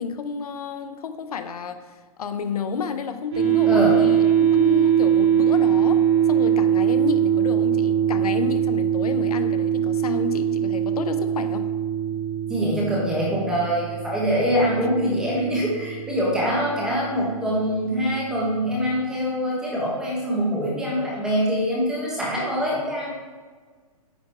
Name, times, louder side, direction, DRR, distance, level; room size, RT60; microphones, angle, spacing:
voice 1, 0.0-1.8 2.2-6.0 6.3-11.7, left 6 dB, 75° left, 9 dB, 0.8 m, -31 dB
sound 1, 3.3-18.5, right 9 dB, 45° right, 2.0 m, -22 dB
voice 2, 3.6-4.0 12.5-23.1, equal, 5° right, -5 dB, 1.2 m, -24 dB
9.2 x 4.1 x 4.4 m, 1.5 s
hypercardioid pair, 175°, 19 cm